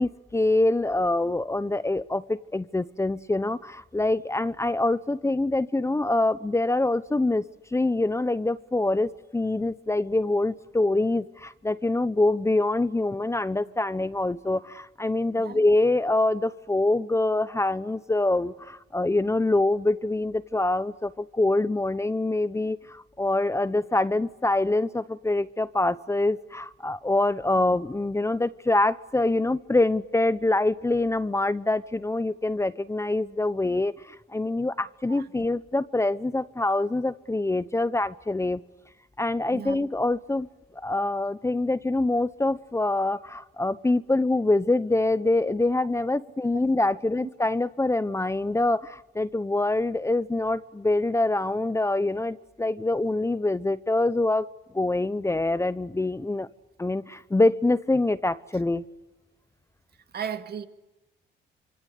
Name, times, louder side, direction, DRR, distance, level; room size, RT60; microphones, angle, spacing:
voice 1, 0.0-38.6 39.2-40.5 40.7-54.5 54.7-56.5 56.8-58.8, left 2 dB, 15° left, 0.9 m, -25 dB
voice 2, 39.5-39.9 60.1-60.7, right 8 dB, 55° right, 2.3 m, -35 dB
27.0 x 26.0 x 8.3 m
cardioid pair, 90°, 20 cm